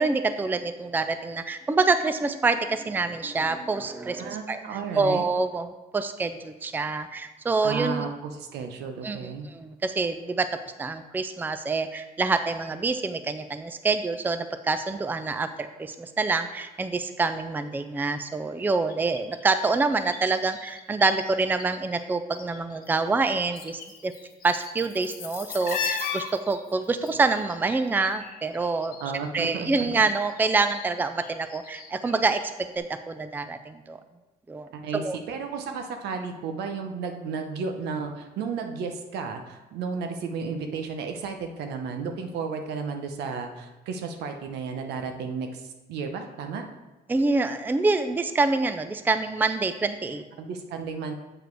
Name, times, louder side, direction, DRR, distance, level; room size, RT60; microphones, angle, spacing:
voice 1, 0.0-4.6 5.0-5.7 5.9-8.1 9.0-10.5 10.8-24.1 24.4-29.0 29.3-34.0 34.5-35.2 47.1-50.2, right 3 dB, 10° right, 9 dB, 0.4 m, -26 dB
voice 2, 4.2-5.2 7.6-9.5 29.0-29.9 34.7-46.7 50.4-51.1, right 5 dB, 80° right, 5 dB, 1.0 m, -33 dB
sound 1, 18.9-21.6 21.9-22.9 23.2-29.1 29.4-32.4 32.7-32.8, left 6 dB, 60° left, 1.1 m, -37 dB
7.8 x 4.9 x 4.7 m, 1.1 s
cardioid pair, 110°, 17 cm